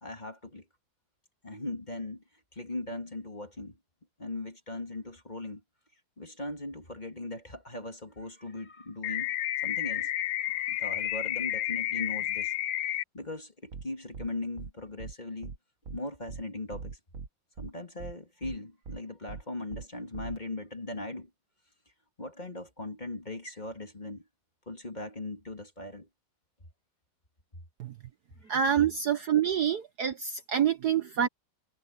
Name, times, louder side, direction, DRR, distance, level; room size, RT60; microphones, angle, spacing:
voice 1, 0.0-0.6 1.4-2.2 2.5-3.8 4.2-5.6 6.2-9.3 9.6-10.1 10.4-12.5 13.1-15.5 15.9-17.0 17.6-21.3 22.2-24.2 24.7-26.1 28.4-28.5, left 2 dB, 20° left, 2.4 m, -39 dB
sound 1, 9.0-13.0, left 13 dB, 70° left, 1.2 m, -31 dB
sound 2, 13.7-13.8 14.1-14.3 14.6-14.7 15.0-15.1 15.4-15.6 15.9-16.0 16.3-16.4 16.7-17.3 17.6-17.7 18.0-18.1 18.4-18.6 18.9-19.0 19.3-19.4 19.7-19.8 20.1-20.4, right 4 dB, 40° right, 1.8 m, -40 dB
voice 2, 28.5-31.3, right 9 dB, 55° right, 1.4 m, -27 dB
omnidirectional pair, 2.2 m